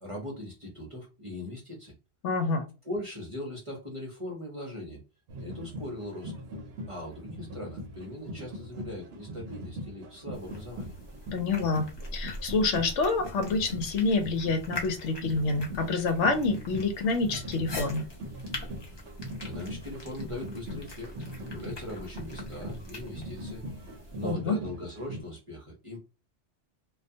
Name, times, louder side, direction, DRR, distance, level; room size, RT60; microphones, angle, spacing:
voice 1, 0.0-1.9 2.8-5.0 5.4-6.3 6.9-10.9 18.8-19.1 19.4-23.6 24.1-26.0, left 1 dB, 35° right, -1 dB, 0.6 m, -40 dB
voice 2, 2.2-2.6 11.3-18.1 24.2-24.6, left 3 dB, 75° left, 6 dB, 0.9 m, -27 dB
sound 1, 5.3-25.2, equal, 65° right, 0.8 m, -41 dB
sound 2, 10.3-24.3, left 2 dB, 30° left, 0.5 m, -43 dB
2.3 x 2.3 x 2.6 m, 0.31 s
omnidirectional pair, 1.3 m